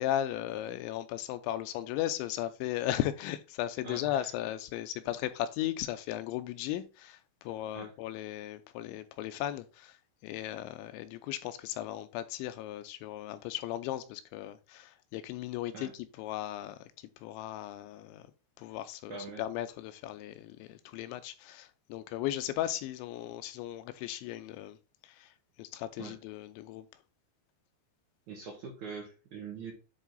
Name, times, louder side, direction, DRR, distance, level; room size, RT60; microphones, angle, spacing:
voice 1, 0.0-16.9 17.2-18.3 18.6-24.8 25.0-25.3 25.6-26.9, left 13 dB, 85° left, 2.9 m, -36 dB
voice 2, 3.8-4.3 7.7-7.9 15.7-15.9 19.1-19.4 26.0-26.2 28.3-29.7, right 5 dB, 55° right, 2.3 m, -43 dB
10.0 x 4.0 x 3.8 m
omnidirectional pair, 5.4 m